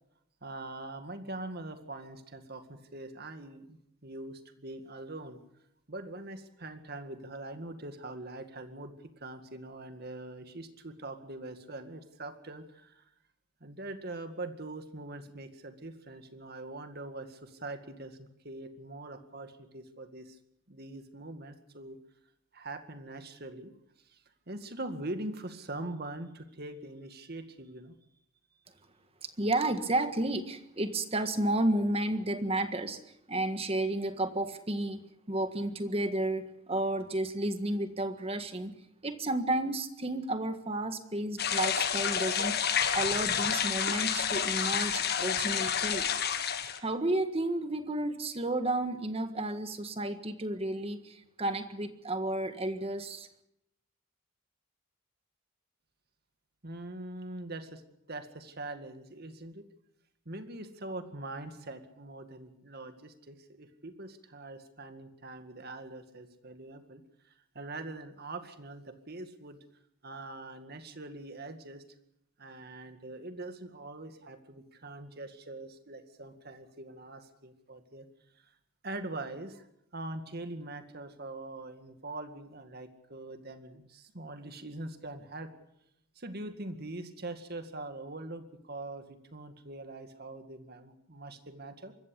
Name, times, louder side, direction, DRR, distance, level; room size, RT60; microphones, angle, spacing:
voice 1, 0.4-5.4 5.9-13.0 13.6-20.4 20.7-22.0 22.5-23.7 24.0-28.0 56.6-57.8 58.1-59.7 60.3-69.6 70.0-71.8 72.4-78.1 78.4-78.5 78.8-79.7 79.9-85.5 86.2-91.9, right 2 dB, 50° right, 8 dB, 2.1 m, -43 dB
voice 2, 29.2-33.0 33.3-38.7 39.0-42.5 42.9-46.4 46.8-53.3, right 1 dB, 30° right, 9 dB, 1.6 m, -32 dB
sound 1, 41.4-46.8, left 8 dB, 50° left, 1.7 m, -29 dB
24.5 x 14.5 x 8.3 m, 0.78 s
head